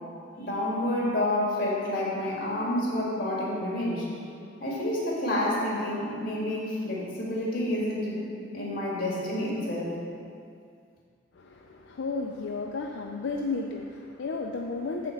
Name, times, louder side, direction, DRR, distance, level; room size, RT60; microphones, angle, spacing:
voice 1, 0.4-4.1 4.6-10.0, left 1 dB, 50° left, -4 dB, 2.2 m, -29 dB
voice 2, 11.3-15.1, left 3 dB, 70° left, 2 dB, 0.4 m, -33 dB
8.5 x 4.2 x 7.2 m, 2.4 s
head